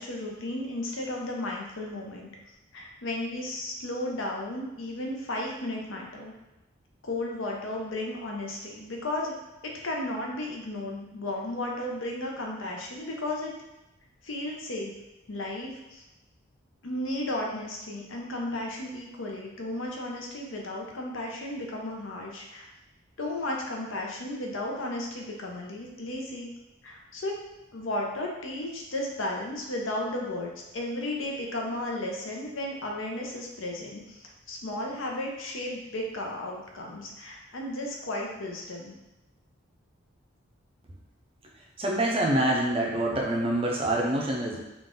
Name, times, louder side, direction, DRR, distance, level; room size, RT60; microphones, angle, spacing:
voice 1, 0.0-2.3 2.7-6.3 7.0-9.3 9.6-13.5 14.2-14.9 15.3-16.0 16.8-22.7 23.2-26.5 26.8-27.3 27.7-39.0, left 1 dB, 75° left, 0 dB, 0.7 m, -34 dB
voice 2, 41.8-44.6, right 1 dB, 25° right, -1 dB, 0.5 m, -26 dB
3.8 x 2.4 x 3.7 m, 0.96 s
head